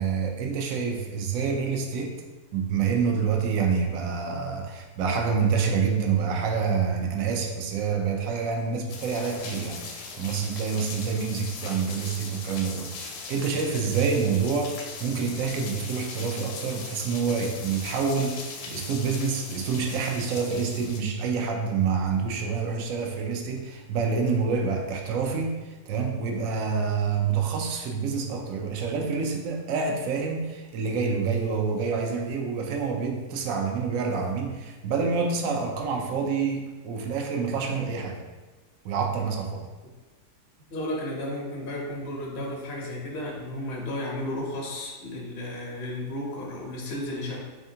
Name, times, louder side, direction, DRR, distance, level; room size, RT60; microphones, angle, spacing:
voice 1, 0.0-2.2 2.5-38.2 38.8-39.6, right 5 dB, 70° right, 2 dB, 0.9 m, -27 dB
sound 1, 8.9-21.0, left 4 dB, 85° left, 1.2 m, -39 dB
voice 2, 40.7-47.4, left 1 dB, 55° left, -2 dB, 0.7 m, -33 dB
3.5 x 3.4 x 2.7 m, 1.3 s
omnidirectional pair, 1.7 m